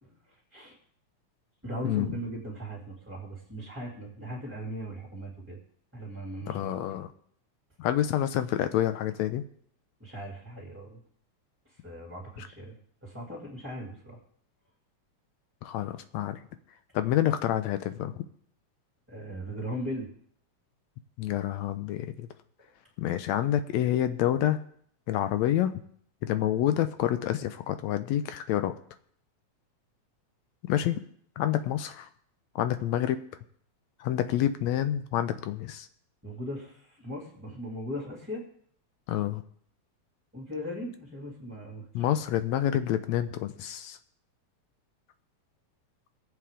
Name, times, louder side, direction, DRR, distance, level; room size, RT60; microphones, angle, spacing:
voice 1, 1.6-5.6 5.9-6.7 10.0-11.0 11.8-12.7 13.0-14.2 19.1-20.1 36.2-38.4 40.3-41.9, equal, 5° right, -4 dB, 2.1 m, -38 dB
voice 2, 6.5-7.1 7.8-9.4 15.6-16.4 16.9-18.1 21.2-22.3 23.0-24.6 25.1-25.7 26.2-28.8 30.6-31.0 31.4-32.1 32.6-33.2 34.0-35.9 39.1-39.4 41.9-44.0, left 12 dB, 80° left, 11 dB, 1.8 m, -28 dB
20.0 x 7.7 x 3.7 m, 0.63 s
omnidirectional pair, 3.3 m